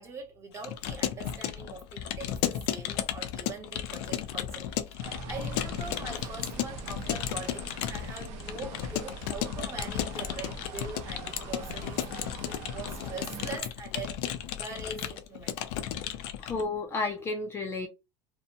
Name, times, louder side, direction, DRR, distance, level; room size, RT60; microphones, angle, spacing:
voice 1, 0.0-15.5, right 3 dB, 20° right, 0.9 m, -43 dB
Keyboard (musical) / Computer keyboard, 0.5-16.6, left 11 dB, 80° left, 0.5 m, -34 dB
sound 1, 5.0-13.6, right 4 dB, 70° right, 0.6 m, -43 dB
voice 2, 16.4-17.9, left 3 dB, 20° left, 0.4 m, -32 dB
2.7 x 2.1 x 2.6 m
cardioid pair, 160°, 13 cm